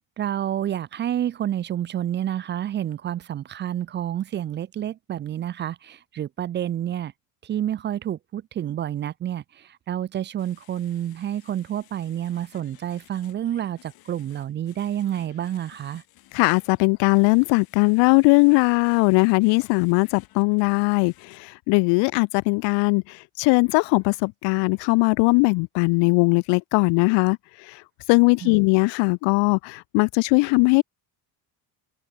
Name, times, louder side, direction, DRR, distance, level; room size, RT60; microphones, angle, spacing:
voice 1, 0.2-7.1 7.4-16.0 28.4-28.6, right 11 dB, 25° right, 0.5 m, -29 dB
sound 1, 10.4-21.4, left 17 dB, 60° left, 6.9 m, -55 dB
voice 2, 16.3-27.4 27.7-27.8 28.1-30.8, left 30 dB, 90° left, 0.7 m, -20 dB
cardioid pair, 170°, 41 cm